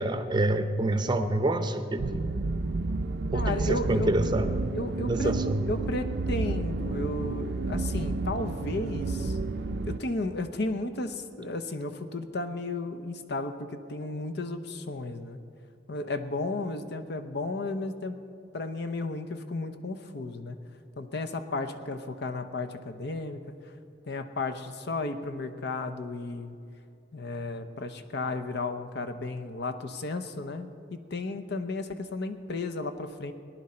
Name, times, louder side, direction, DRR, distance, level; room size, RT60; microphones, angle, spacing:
voice 1, 0.0-2.3 3.1-4.5 5.1-5.6, right 1 dB, 25° right, 9 dB, 0.6 m, -27 dB
sound 1, 2.0-10.0, right 3 dB, 60° right, 0.5 m, -31 dB
voice 2, 3.3-4.1 4.7-5.3 5.7-9.4 9.8-15.4 15.9-18.1 18.5-20.6 21.0-23.7 24.0-26.6 27.1-33.3, left 2 dB, 60° left, 7 dB, 0.8 m, -34 dB
19.0 x 10.5 x 4.3 m, 2.5 s
head